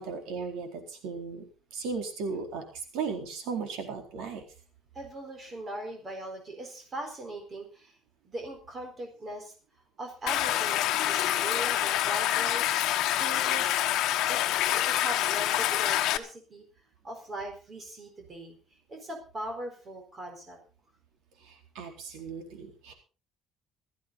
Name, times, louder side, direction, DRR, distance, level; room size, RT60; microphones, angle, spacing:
voice 1, 0.0-1.4 1.7-2.6 2.9-4.4 21.4-22.9, right 5 dB, 80° right, 4 dB, 4.1 m, -36 dB
voice 2, 4.9-7.9 8.2-9.5 10.0-12.8 13.1-13.9 14.3-16.6 17.0-18.6 18.9-20.6, right 1 dB, 25° right, 3 dB, 4.3 m, -40 dB
Stream, 10.3-16.2, left 13 dB, 65° left, 1.2 m, -26 dB
17.0 x 14.0 x 3.9 m, 0.34 s
cardioid pair, 170°, 0 cm